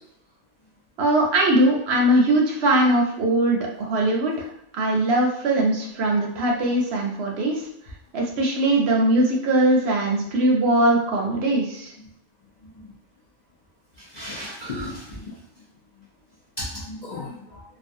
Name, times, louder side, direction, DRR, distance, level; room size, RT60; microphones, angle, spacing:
voice 1, 1.0-7.7 8.1-11.9, right 1 dB, 65° right, 0 dB, 0.7 m, -21 dB
voice 2, 14.1-15.2 16.6-17.6, left 1 dB, 55° left, -6 dB, 0.5 m, -34 dB
2.4 x 2.3 x 2.6 m, 0.77 s
omnidirectional pair, 1.3 m